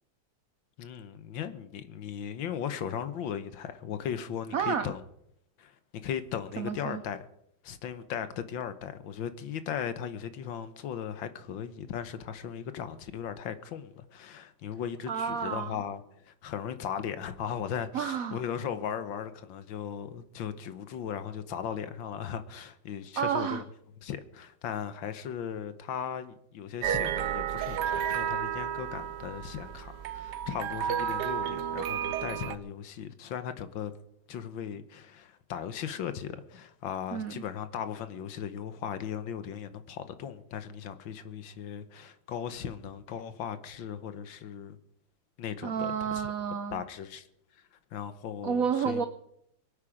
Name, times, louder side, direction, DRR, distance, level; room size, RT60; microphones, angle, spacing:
voice 1, 0.8-5.0 5.6-5.8 6.0-7.2 7.6-23.6 24.0-33.9 34.3-44.8 45.4-46.3 46.7-47.3 47.9-49.1, left 8 dB, 70° left, 1.6 m, -37 dB
voice 2, 4.5-4.9 6.6-7.0 15.1-15.8 17.9-18.4 23.2-23.6 37.1-37.4 45.6-46.8 48.4-49.1, right 7 dB, 90° right, 0.7 m, -30 dB
sound 1, 26.8-32.6, right 9 dB, 65° right, 1.1 m, -32 dB
23.5 x 8.6 x 5.1 m
omnidirectional pair, 2.3 m